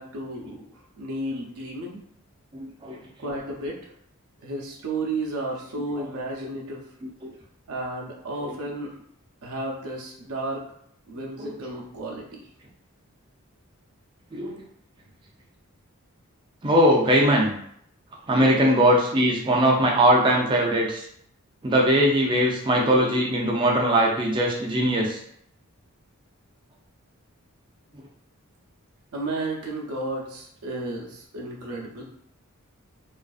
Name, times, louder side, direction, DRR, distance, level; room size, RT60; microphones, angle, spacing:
voice 1, 0.0-2.0 3.2-3.8 4.4-6.8 7.7-9.0 9.4-10.6 11.1-12.4 29.1-32.0, right 2 dB, 90° right, -2 dB, 0.5 m, -33 dB
voice 2, 2.5-3.0 11.4-11.5 14.3-14.6 16.6-17.5 18.3-21.0 21.6-25.2, equal, 20° right, -1 dB, 0.4 m, -20 dB
2.4 x 2.4 x 2.3 m, 0.69 s
head